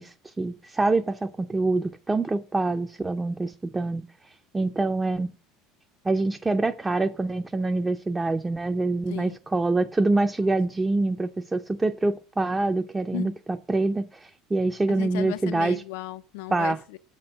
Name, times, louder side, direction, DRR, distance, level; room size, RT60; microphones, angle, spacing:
voice 1, 0.0-4.1 4.5-5.3 6.0-13.3 13.7-15.8 16.5-16.8, right 2 dB, 10° right, 0.4 m, -25 dB
voice 2, 14.9-17.0, left 16 dB, 80° left, 0.5 m, -35 dB
7.1 x 4.4 x 6.3 m
supercardioid pair, 130°, 0 cm